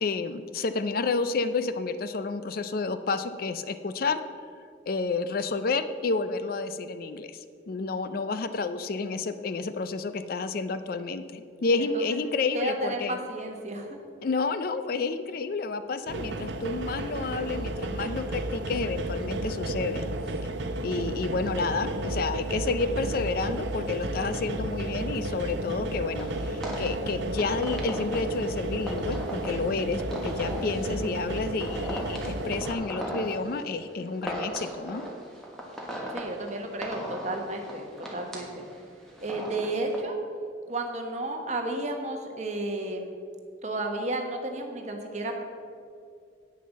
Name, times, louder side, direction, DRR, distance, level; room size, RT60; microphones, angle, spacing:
voice 1, 0.0-4.2 4.9-13.2 14.2-20.0 20.4-20.5 20.8-35.0, left 4 dB, 50° left, 11 dB, 0.4 m, -30 dB
voice 2, 12.5-14.0 36.1-38.7 39.2-40.2 40.7-43.1 43.6-45.4, right 2 dB, 40° right, 3 dB, 1.2 m, -32 dB
sound 1, 16.1-32.7, right 1 dB, 70° right, 0.7 m, -32 dB
sound 2, 26.2-40.0, equal, 5° left, 1.4 m, -38 dB
8.7 x 6.8 x 6.4 m, 2.3 s
head